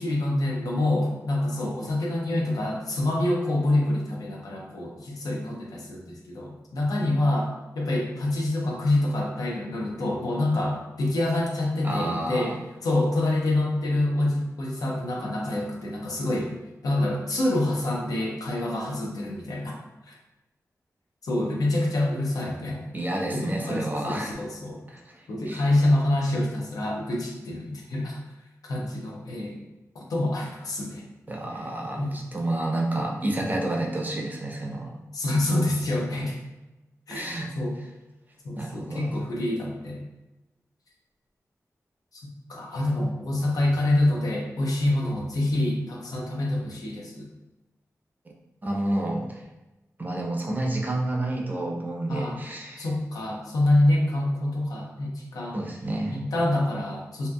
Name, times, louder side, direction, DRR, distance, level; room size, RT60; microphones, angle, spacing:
voice 1, 0.0-12.5 12.8-16.5 16.8-19.7 20.1-20.2 21.2-22.9 23.3-24.8 25.3-28.2 28.6-29.6 29.9-31.0 32.0-32.1 35.1-36.4 37.1-37.8 38.4-40.0 42.1-42.2 42.5-47.3 52.1-52.4 52.8-55.6 56.1-57.3, left 1 dB, 85° left, -2 dB, 0.5 m, -26 dB
voice 2, 11.8-12.6 22.9-24.4 24.9-25.6 31.3-34.9 37.1-37.5 38.6-39.1 48.6-49.4 50.0-52.8 55.5-56.2, right 1 dB, 30° right, 0 dB, 0.5 m, -29 dB
2.7 x 2.4 x 2.2 m, 1.0 s
wide cardioid pair, 70°, 6 cm